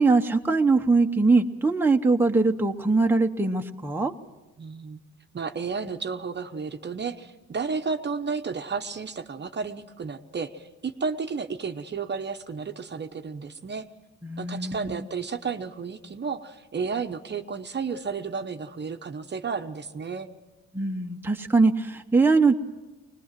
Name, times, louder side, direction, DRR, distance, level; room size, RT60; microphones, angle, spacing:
voice 1, 0.0-4.1 14.2-15.0 20.7-22.5, right 3 dB, 5° right, 3 dB, 1.0 m, -22 dB
voice 2, 4.6-5.0 5.3-13.9 14.4-20.3, right 5 dB, 35° right, 6 dB, 1.0 m, -32 dB
22.5 x 20.0 x 7.5 m, 1.2 s
cardioid pair, 90°, 30 cm